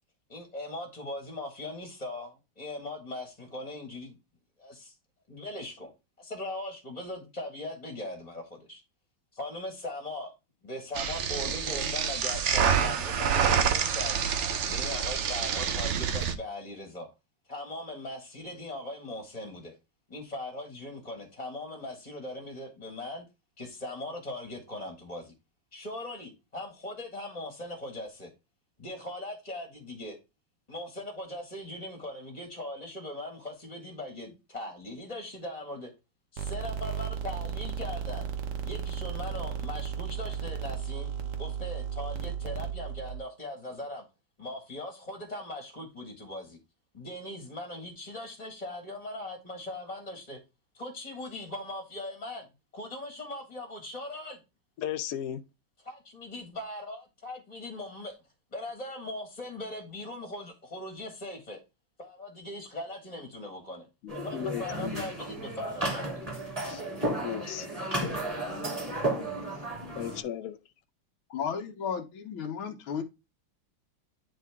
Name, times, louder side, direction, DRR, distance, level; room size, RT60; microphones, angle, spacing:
voice 1, 0.3-4.2 4.6-4.9 5.3-5.9 6.2-8.8 9.3-10.3 10.6-14.3 14.7-17.1 17.5-19.7 20.1-23.2 23.6-25.3 25.7-28.3 28.8-30.2 30.7-35.9 36.3-38.3 38.6-41.1 41.4-44.0 44.4-46.6 46.9-50.4 50.7-52.5 52.7-54.4 55.8-58.1 58.5-61.6 62.0-66.3, left 1 dB, 20° left, 1.5 m, -40 dB
sound 1, 11.0-16.4, right 7 dB, 75° right, 0.6 m, -27 dB
sound 2, 36.4-43.2, right 7 dB, 55° right, 1.0 m, -34 dB
voice 2, 54.8-55.4 64.3-65.0 67.2-67.7 69.9-70.6, left 10 dB, 70° left, 0.8 m, -35 dB
sound 3, 64.1-70.2, right 1 dB, 15° right, 2.6 m, -33 dB
voice 3, 71.3-73.0, left 7 dB, 90° left, 1.8 m, -34 dB
10.0 x 3.8 x 3.5 m
omnidirectional pair, 2.2 m